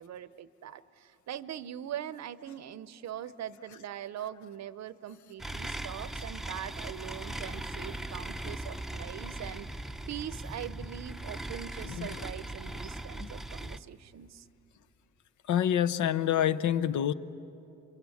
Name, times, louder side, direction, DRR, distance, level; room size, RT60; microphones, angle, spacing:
voice 1, 0.0-14.5, right 10 dB, 60° right, 15 dB, 0.7 m, -42 dB
sound 1, 5.4-13.8, right 1 dB, ahead, 0.7 m, -39 dB
voice 2, 15.5-17.1, left 10 dB, 75° left, 12 dB, 0.9 m, -27 dB
26.5 x 22.5 x 8.4 m, 3.0 s
cardioid pair, 90°, 30 cm